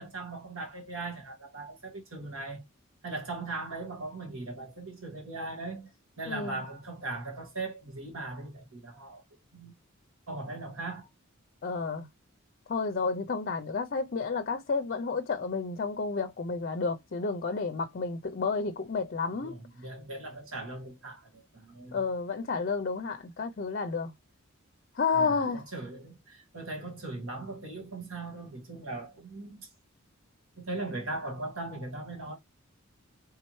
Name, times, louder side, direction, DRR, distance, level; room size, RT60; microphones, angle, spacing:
voice 1, 0.0-2.6 3.0-5.9 6.2-9.2 9.5-9.7 10.3-11.1 19.4-22.0 25.1-29.7 30.6-32.3, right 2 dB, 70° right, 1.6 m, -39 dB
voice 2, 11.6-12.1 12.7-19.6 21.9-24.1 25.0-25.6, left 4 dB, 45° left, 0.5 m, -31 dB
4.3 x 3.5 x 3.1 m
head